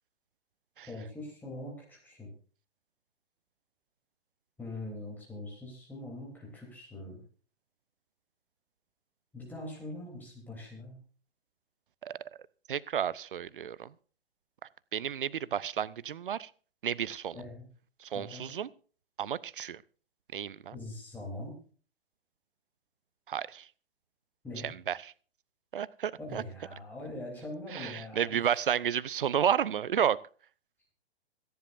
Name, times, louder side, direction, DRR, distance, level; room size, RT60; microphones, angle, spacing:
voice 1, 0.9-2.3 4.6-7.2 9.3-11.0 17.3-17.7 18.1-18.5 20.7-21.5 24.4-24.7 26.2-28.4, left 1 dB, 5° left, -3 dB, 3.2 m, -42 dB
voice 2, 12.7-13.9 14.9-16.5 16.8-17.4 18.0-18.7 19.2-19.8 20.3-20.7 23.3-23.7 24.6-25.1 25.7-26.4 27.7-30.2, right 9 dB, 55° right, 22 dB, 0.6 m, -31 dB
26.0 x 10.5 x 2.6 m, 0.41 s
figure-of-eight pair, 120°, 32 cm